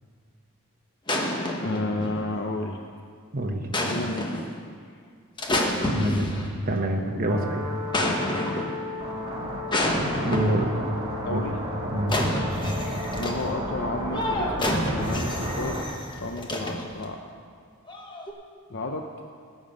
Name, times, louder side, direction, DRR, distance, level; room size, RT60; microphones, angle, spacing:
sound 1, 1.1-2.5 3.7-4.5 5.4-6.8 7.9-8.9 9.7-10.8 12.1-13.5 14.1-17.0 17.9-18.3, left 1 dB, 20° left, 1.1 m, -28 dB
voice 1, 1.6-2.9 3.8-4.5 10.5-10.7 11.2-11.6 13.2-15.8 16.2-17.2 18.7-19.0, left 2 dB, 50° left, 3 dB, 0.6 m, -31 dB
voice 2, 3.3-3.7 5.8-7.7 10.2-10.7 11.3-11.4 11.9-12.2, right 1 dB, 40° right, 1 dB, 1.0 m, -26 dB
sound 2, 7.3-15.8, equal, 25° right, 1.8 m, -33 dB
17.5 x 7.3 x 5.2 m, 2.1 s
head